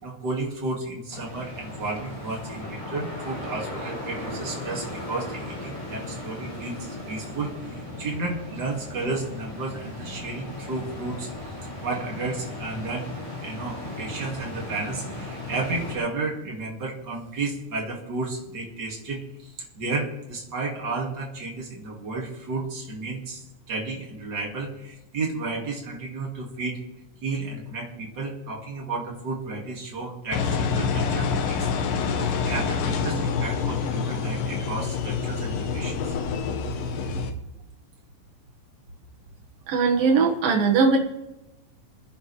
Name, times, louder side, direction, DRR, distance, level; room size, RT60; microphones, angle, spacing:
voice 1, 0.0-11.3 11.8-19.2 19.7-26.8 27.2-31.7 32.1-36.1 37.1-37.2, right 3 dB, 35° right, 0 dB, 2.4 m, -32 dB
sound 1, 1.1-15.9, left 1 dB, 55° left, 8.7 m, -37 dB
Engine, 30.3-37.3, left 5 dB, 80° left, 2.9 m, -27 dB
voice 2, 39.7-41.0, right 4 dB, 80° right, 0 dB, 3.3 m, -20 dB
28.0 x 10.0 x 3.4 m, 0.92 s
omnidirectional pair, 4.0 m